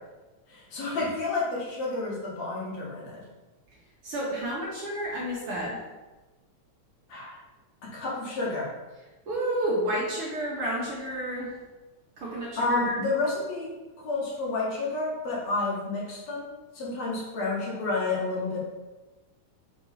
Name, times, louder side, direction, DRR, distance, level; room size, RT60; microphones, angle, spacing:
voice 1, 0.5-3.2 7.1-7.4 7.8-8.7 12.6-13.7 14.0-16.5 16.7-18.6, left 3 dB, 60° left, -5 dB, 2.8 m, -30 dB
voice 2, 4.0-5.8 9.3-11.6 12.2-13.0, right 1 dB, 55° right, -4 dB, 1.9 m, -30 dB
6.2 x 4.5 x 5.5 m, 1.2 s
omnidirectional pair, 3.6 m